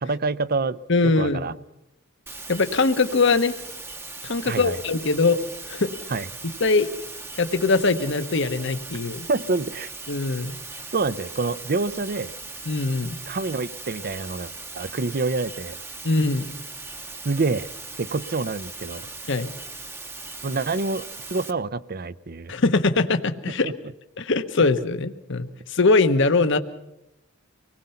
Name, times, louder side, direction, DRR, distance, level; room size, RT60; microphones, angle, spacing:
voice 1, 0.0-1.5 4.4-4.8 6.1-6.3 9.3-9.9 10.9-12.3 13.3-15.8 17.2-17.7 18.0-19.1 20.4-22.5 23.5-23.7, right 3 dB, 50° right, 16 dB, 0.7 m, -27 dB
voice 2, 0.9-1.5 2.5-3.6 4.2-5.4 5.7-5.9 6.6-6.9 7.4-9.3 10.1-10.6 12.7-13.2 16.0-16.5 19.3-19.5 22.5-23.7 24.2-26.6, left 3 dB, 65° left, 8 dB, 1.1 m, -22 dB
sound 1, 2.3-21.5, right 3 dB, 10° right, 0.9 m, -39 dB
25.5 x 19.0 x 5.7 m, 0.86 s
head